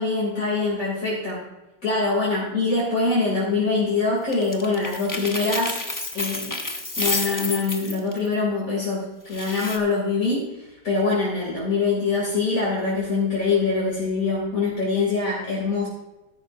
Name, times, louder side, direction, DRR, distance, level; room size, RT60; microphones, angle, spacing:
voice 1, 0.0-1.4 1.8-5.8 6.1-6.6 7.0-15.9, left 3 dB, 50° left, -6 dB, 3.4 m, -24 dB
sound 1, 4.3-8.3 9.3-9.8, left 2 dB, 20° left, 0.6 m, -29 dB
13.0 x 10.5 x 2.6 m, 1.0 s
omnidirectional pair, 1.8 m